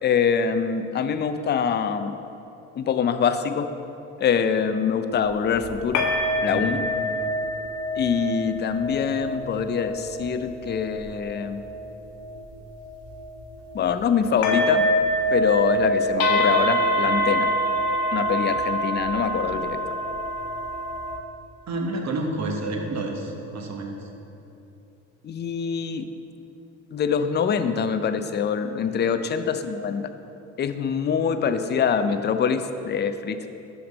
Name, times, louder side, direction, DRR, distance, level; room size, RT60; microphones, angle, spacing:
voice 1, 0.0-2.2 2.8-3.7 4.2-6.0 6.4-6.8 8.0-11.6 13.7-14.8 15.3-17.5 18.1-19.8 25.2-26.0 26.9-30.1 30.6-33.5, left 7 dB, 30° left, 9 dB, 0.4 m, -24 dB
sound 1, 5.1-14.1 14.4-21.2, equal, 85° left, 0.9 m, -26 dB
voice 2, 21.7-24.1 28.8-29.0, right 2 dB, 45° right, 2 dB, 1.2 m, -30 dB
5.9 x 5.1 x 5.1 m, 2.9 s
supercardioid pair, 65°, 38 cm